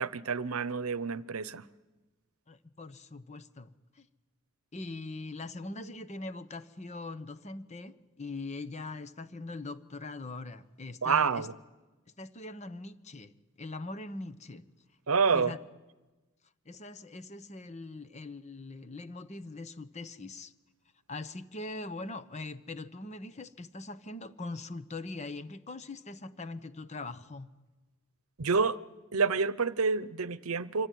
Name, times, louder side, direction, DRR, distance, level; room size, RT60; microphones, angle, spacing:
voice 1, 0.0-1.6 11.0-11.5 15.1-15.5 28.4-28.8 29.1-30.9, right 5 dB, 80° right, 0.8 m, -28 dB
voice 2, 2.5-4.1 4.7-11.5 12.2-13.3 13.6-14.6 15.3-15.6 16.6-20.5 21.1-27.5, left 2 dB, 30° left, 1.0 m, -42 dB
26.0 x 24.5 x 9.3 m
head